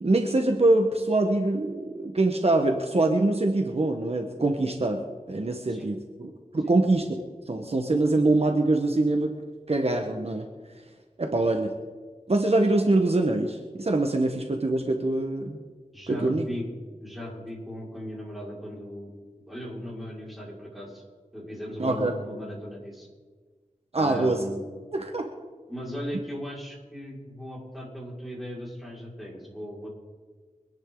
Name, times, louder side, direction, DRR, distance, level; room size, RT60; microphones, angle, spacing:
voice 1, 0.0-7.1 7.5-9.3 9.7-10.5 11.2-11.7 12.3-15.6 16.1-16.4 21.8-22.1 23.9-24.4 24.9-25.3, right 2 dB, 50° right, 3 dB, 1.4 m, -24 dB
voice 2, 15.9-16.7 17.0-19.1 19.5-21.0 21.3-23.1 23.9-24.7 25.7-29.9, equal, ahead, -5 dB, 5.3 m, -37 dB
25.0 x 10.5 x 3.9 m, 1.4 s
wide cardioid pair, 80°, 13 cm